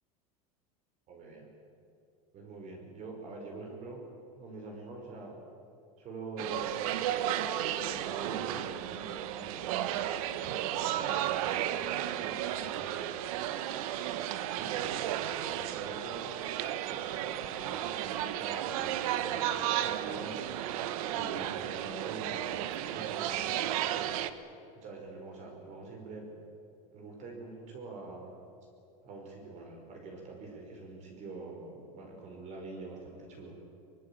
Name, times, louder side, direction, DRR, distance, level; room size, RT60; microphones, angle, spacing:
voice 1, 1.1-1.5 2.3-4.0 4.3-5.4 6.0-6.8 7.7-13.5 13.8-16.3 16.8-20.4 21.1-24.1 24.7-26.3 26.9-28.3 29.0-33.6, right 3 dB, 35° right, 1 dB, 5.2 m, -45 dB
sound 1, 6.4-24.3, right 12 dB, 70° right, 1.5 m, -33 dB
23.5 x 23.0 x 8.8 m, 2.7 s
supercardioid pair, 150°, 19 cm